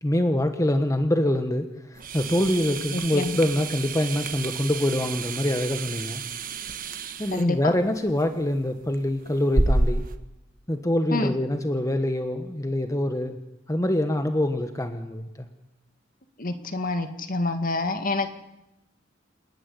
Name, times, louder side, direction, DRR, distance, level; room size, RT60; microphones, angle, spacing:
voice 1, 0.0-6.2 7.2-10.0 10.7-13.4 13.7-15.5, left 1 dB, 15° left, 7 dB, 1.3 m, -25 dB
sound 1, 1.9-10.2, right 2 dB, 45° right, 1.4 m, -30 dB
voice 2, 2.9-3.3 7.3-7.7 11.1-11.3 16.4-18.3, left 2 dB, 45° left, 8 dB, 1.9 m, -27 dB
28.0 x 11.0 x 9.9 m, 0.93 s
head